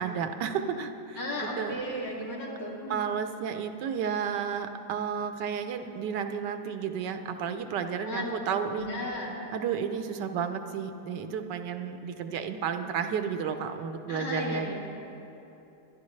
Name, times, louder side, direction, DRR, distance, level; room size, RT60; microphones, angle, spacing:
voice 1, 0.0-1.8 2.9-8.9 9.5-14.7, right 7 dB, 90° right, 8 dB, 1.4 m, -32 dB
voice 2, 1.2-3.0 8.0-8.3 8.6-9.4 14.1-14.7, left 1 dB, 85° left, -5 dB, 3.2 m, -35 dB
23.5 x 11.0 x 3.2 m, 3.0 s
omnidirectional pair, 1.8 m